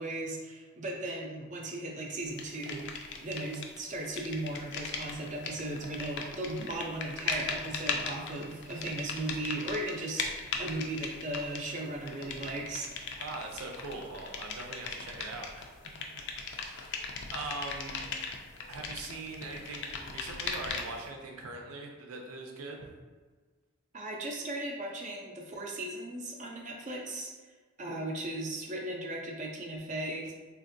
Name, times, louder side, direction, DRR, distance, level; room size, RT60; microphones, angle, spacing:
voice 1, 0.0-12.9 23.9-27.3 27.8-30.3, right 1 dB, 35° right, 0 dB, 0.4 m, -37 dB
sound 1, 2.4-3.8 4.0-21.1, left 4 dB, 55° left, 0.3 m, -38 dB
voice 2, 13.2-18.0 18.7-22.9, right 3 dB, 85° right, 1 dB, 0.5 m, -42 dB
3.4 x 2.5 x 2.6 m, 1.4 s
head